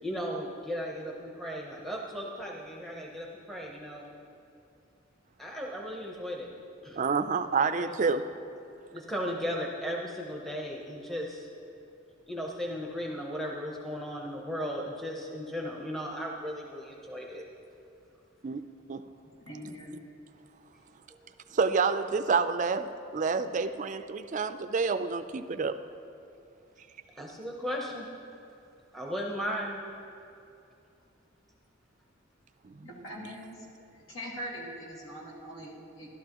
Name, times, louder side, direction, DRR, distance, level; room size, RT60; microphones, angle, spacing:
voice 1, 0.0-4.0 5.4-6.5 6.8-7.0 7.8-7.9 8.9-11.5 12.3-17.4 21.1-21.3 27.2-28.1 28.9-29.8, equal, ahead, -2 dB, 0.8 m, -36 dB
voice 2, 7.0-8.3 18.4-18.6 18.9-19.0 19.6-19.7 21.5-25.8 32.6-32.9 33.2-33.3, right 5 dB, 40° right, 10 dB, 0.4 m, -28 dB
voice 3, 19.5-20.0 32.8-33.6 34.1-36.1, equal, 80° left, -3 dB, 2.2 m, -42 dB
12.5 x 12.0 x 3.0 m, 2.7 s
head